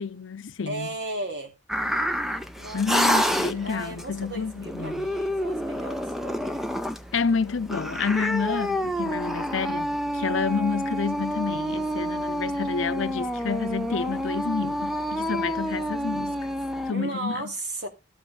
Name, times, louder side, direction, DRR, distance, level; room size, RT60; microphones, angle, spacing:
voice 1, 0.0-0.9 2.7-5.1 7.1-16.4 16.9-17.4, left 5 dB, 80° left, 0.6 m, -29 dB
voice 2, 0.7-1.5 2.6-3.2 3.5-6.6 16.9-17.9, right 2 dB, 55° right, 2.9 m, -35 dB
sound 1, 1.7-16.9, equal, ahead, 0.6 m, -29 dB
13.0 x 5.0 x 5.3 m
head